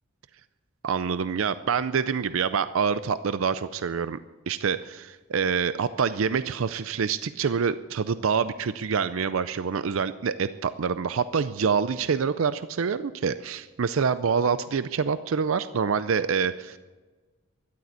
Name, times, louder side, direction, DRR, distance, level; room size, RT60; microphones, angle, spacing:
voice 1, 0.8-4.2 4.5-16.8, right 6 dB, 70° right, 13 dB, 0.5 m, -26 dB
13.5 x 11.5 x 8.1 m, 1.3 s
head